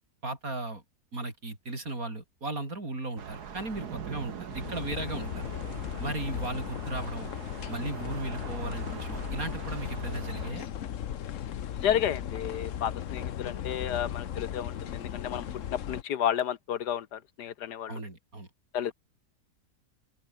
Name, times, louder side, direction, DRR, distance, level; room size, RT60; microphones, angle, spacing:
voice 1, 0.2-0.8 1.1-5.5 6.0-7.3 7.7-10.7 17.9-18.5, right 2 dB, 60° right, 5.7 m, -36 dB
Thunder / Rain, 3.2-10.5, right 7 dB, 75° right, 2.1 m, -43 dB
sound 1, 4.5-16.0, left 9 dB, 55° left, 1.1 m, -37 dB
voice 2, 11.8-15.5 15.9-18.0 18.7-18.9, left 10 dB, 90° left, 1.7 m, -31 dB
open air
omnidirectional pair, 1.7 m